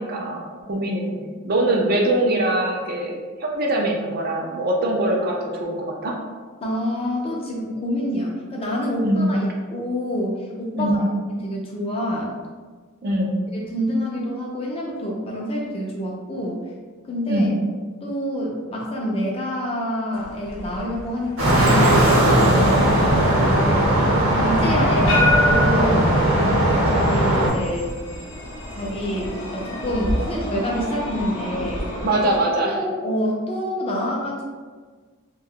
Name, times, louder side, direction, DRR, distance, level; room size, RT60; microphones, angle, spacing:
voice 1, 0.0-6.2 9.0-9.3 10.7-11.1 13.0-13.4 17.3-17.5 32.0-32.8, right 1 dB, 45° right, 0 dB, 0.4 m, -23 dB
voice 2, 6.6-12.3 13.5-16.6 17.1-17.6 18.0-21.8 22.3-23.7 24.3-26.2 26.9-28.0 28.7-31.9 32.6-34.4, equal, 25° left, -2 dB, 0.4 m, -27 dB
sound 1, 20.1-32.4, left 1 dB, 65° left, 0.7 m, -29 dB
sound 2, 21.4-27.5, right 1 dB, 65° right, 0.8 m, -18 dB
2.6 x 2.2 x 3.5 m, 1.5 s
head